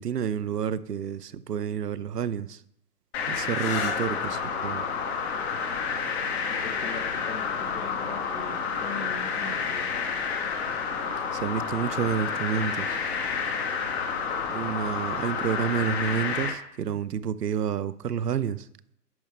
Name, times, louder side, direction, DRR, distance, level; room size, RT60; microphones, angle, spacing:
voice 1, 0.0-2.6 3.3-4.8 11.3-13.0 14.5-18.7, right 8 dB, 75° right, 16 dB, 0.6 m, -29 dB
sound 1, 3.1-16.5, left 6 dB, 40° left, 1.4 m, -30 dB
sound 2, 3.5-10.9 11.9-12.4 15.9-16.3, left 5 dB, 25° left, 1.0 m, -43 dB
voice 2, 6.5-9.9, left 3 dB, 60° left, 2 dB, 1.6 m, -41 dB
10.5 x 5.4 x 3.6 m, 0.71 s
figure-of-eight pair, 135°, 49 cm